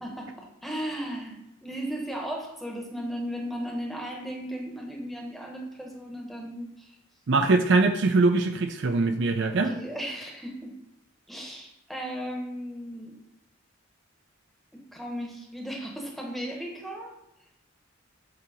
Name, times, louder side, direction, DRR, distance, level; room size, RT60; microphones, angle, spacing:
voice 1, 0.0-6.9 9.5-10.7 11.3-13.2 14.7-17.1, equal, ahead, -1 dB, 0.9 m, -36 dB
voice 2, 7.3-9.7, right 3 dB, 60° right, 7 dB, 0.4 m, -22 dB
7.6 x 2.9 x 4.8 m, 0.87 s
head